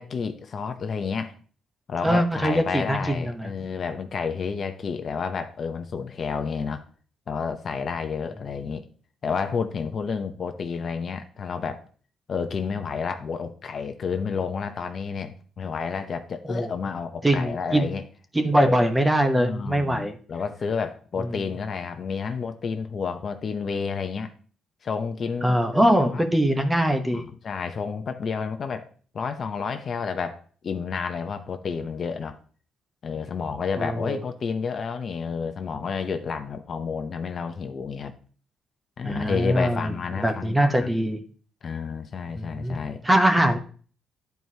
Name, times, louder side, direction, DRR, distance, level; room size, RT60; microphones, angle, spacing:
voice 1, 0.0-1.3 1.9-6.8 7.3-8.8 9.2-11.8 12.3-18.0 18.7-18.8 19.4-24.3 24.8-25.6 25.9-26.2 27.1-28.9 29.1-32.4 33.0-38.1 39.0-40.9 41.6-43.0, left 5 dB, 50° left, 8 dB, 0.7 m, -30 dB
voice 2, 2.0-3.5 16.5-16.7 17.2-17.9 18.3-20.2 21.2-21.4 25.4-27.2 33.8-34.2 39.0-41.2 42.3-42.8 43.0-43.6, right 1 dB, 10° right, 6 dB, 0.9 m, -22 dB
11.0 x 4.6 x 2.8 m, 0.42 s
cardioid pair, 90°, 0 cm